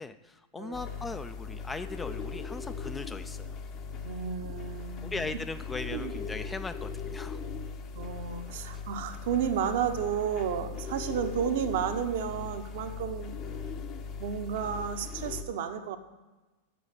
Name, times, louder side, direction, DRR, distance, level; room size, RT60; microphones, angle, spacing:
voice 1, 0.0-3.6 5.0-7.4 8.7-8.8, left 3 dB, 10° left, 10 dB, 0.4 m, -39 dB
voice 2, 0.6-0.9 4.0-5.2 5.9-6.1 7.9-13.3 14.2-16.0, right 8 dB, 55° right, 7 dB, 0.8 m, -32 dB
sound 1, 0.7-15.4, left 5 dB, 35° left, 0.9 m, -39 dB
7.2 x 6.9 x 7.7 m, 1.1 s
figure-of-eight pair, 90°, 0 cm